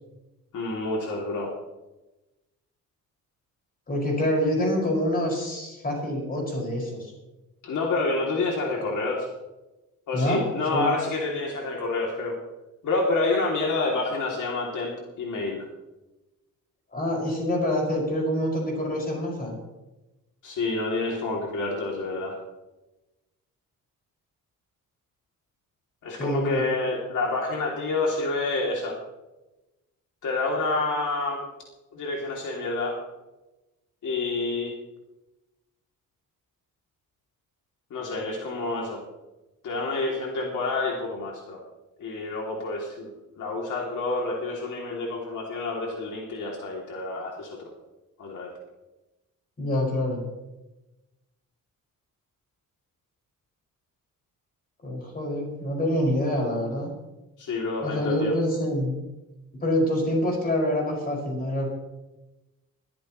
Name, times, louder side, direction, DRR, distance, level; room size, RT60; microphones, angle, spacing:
voice 1, 0.5-1.5 7.6-9.3 10.1-12.4 12.8-15.7 20.4-22.4 26.0-29.0 30.2-31.5 31.9-33.0 34.0-34.7 37.9-39.0 39.6-41.6 42.0-43.1 43.4-47.7 48.2-48.5 57.4-58.3, left 3 dB, 65° left, -1 dB, 2.9 m, -28 dB
voice 2, 3.9-7.1 10.1-10.9 16.9-19.5 26.2-26.6 49.6-50.2 54.8-56.9 57.8-59.0 59.6-61.7, left 1 dB, 30° left, -2 dB, 5.9 m, -26 dB
22.0 x 14.5 x 3.2 m, 1.0 s
wide cardioid pair, 165°, 32 cm